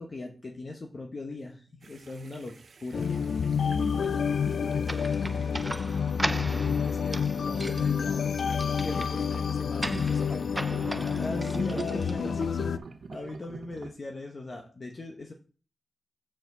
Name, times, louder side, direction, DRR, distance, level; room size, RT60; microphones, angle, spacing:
voice 1, 0.0-3.0 8.9-9.2 11.2-12.3 13.1-15.3, left 2 dB, 50° left, 1 dB, 1.0 m, -39 dB
sound 1, 1.8-9.8 10.7-13.9, right 4 dB, 85° right, 0.7 m, -46 dB
sound 2, 2.9-12.8, left 6 dB, 85° left, 0.4 m, -29 dB
voice 2, 3.1-10.6 10.9-11.3 11.7-12.7, left 1 dB, 30° left, 4 dB, 1.4 m, -41 dB
sound 3, 4.9-12.5, right 1 dB, 15° right, 0.4 m, -38 dB
5.9 x 5.0 x 6.6 m, 0.38 s
wide cardioid pair, 100°, 0 cm